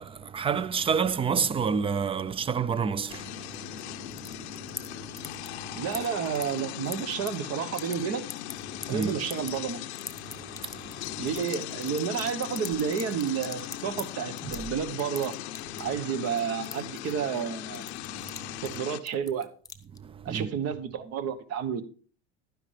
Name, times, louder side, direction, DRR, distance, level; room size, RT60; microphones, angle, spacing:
voice 1, 0.0-5.8 8.8-9.2 10.3-11.2 14.4-14.6 18.2-18.6 20.0-20.5, right 6 dB, 15° right, 0.4 m, -31 dB
sound 1, 3.0-3.8 4.1-4.9 5.2-5.6 5.9-7.3 7.6-7.9 8.3-14.0 14.4-14.7 15.0-15.9 16.3-17.5 17.7-18.4 18.6-18.8 19.1-20.0, left 5 dB, 10° left, 0.9 m, -40 dB
sound 2, 3.1-19.0, left 13 dB, 90° left, 0.7 m, -39 dB
voice 2, 5.7-8.2 8.9-9.9 11.2-15.3 15.8-17.9 18.6-19.5 20.2-21.8, right 7 dB, 50° right, 1.2 m, -31 dB
11.5 x 9.7 x 3.3 m
supercardioid pair, 110°, 32 cm